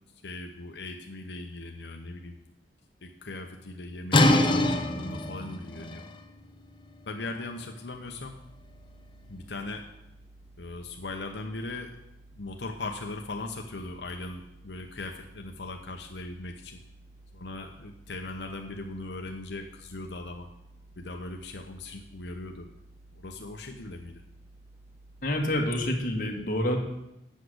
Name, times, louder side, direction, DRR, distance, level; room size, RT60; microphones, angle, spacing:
voice 1, 0.2-2.4 3.0-6.1 7.1-8.3 9.3-9.8 10.6-12.0 12.3-16.8 17.3-20.5 21.0-22.7 23.1-24.2, left 2 dB, 75° left, 3 dB, 0.8 m, -39 dB
sound 1, 4.1-9.7, left 1 dB, 30° left, 0.7 m, -27 dB
sound 2, 7.9-26.0, right 2 dB, 40° right, 1.0 m, -54 dB
voice 2, 25.2-26.8, left 1 dB, 50° left, 1 dB, 1.7 m, -27 dB
8.3 x 6.4 x 7.9 m, 0.86 s
head